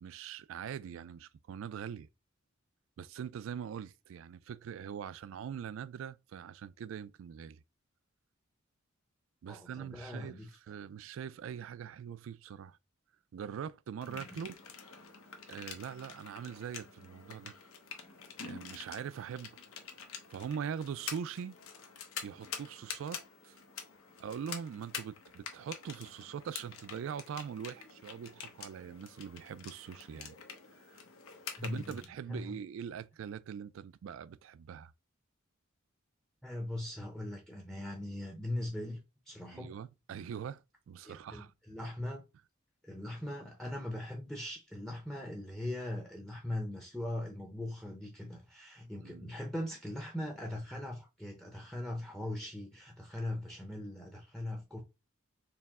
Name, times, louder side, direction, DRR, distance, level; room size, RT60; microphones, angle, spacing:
voice 1, 0.0-2.1 3.0-7.6 9.4-12.8 13.3-14.6 15.5-17.5 18.4-19.6 20.3-21.6 22.2-23.6 24.2-30.3 30.9-31.0 31.6-34.9 39.5-41.5 49.0-49.3, right 7 dB, 70° right, 0.3 m, -42 dB
voice 2, 9.5-10.5 14.1-14.4 31.6-32.0 32.3-32.5 36.4-39.7 41.0-42.2 42.8-54.8, left 1 dB, ahead, 0.6 m, -40 dB
sound 1, 14.0-32.1, left 7 dB, 85° left, 0.8 m, -47 dB
4.5 x 2.0 x 3.6 m
head